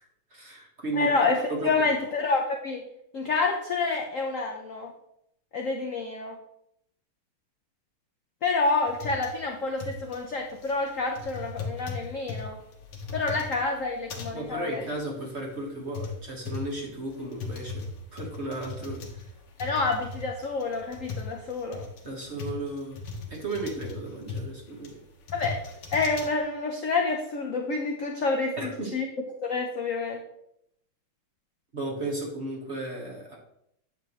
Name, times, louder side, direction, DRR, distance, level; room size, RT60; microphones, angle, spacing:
voice 1, 0.3-1.7 14.3-17.8 18.1-19.3 22.0-23.0 23.3-25.0 28.6-28.9 31.7-33.4, right 2 dB, 35° right, -2 dB, 1.5 m, -34 dB
voice 2, 1.0-1.4 1.6-2.8 3.1-4.9 5.5-6.4 8.4-12.6 13.1-14.8 19.6-21.8 25.3-25.6 25.9-28.6 28.9-29.1 29.4-30.2, left 3 dB, 60° left, 1 dB, 0.8 m, -28 dB
sound 1, 8.9-26.4, left 4 dB, 85° left, 2.2 m, -39 dB
9.4 x 7.0 x 3.1 m, 0.77 s
omnidirectional pair, 2.4 m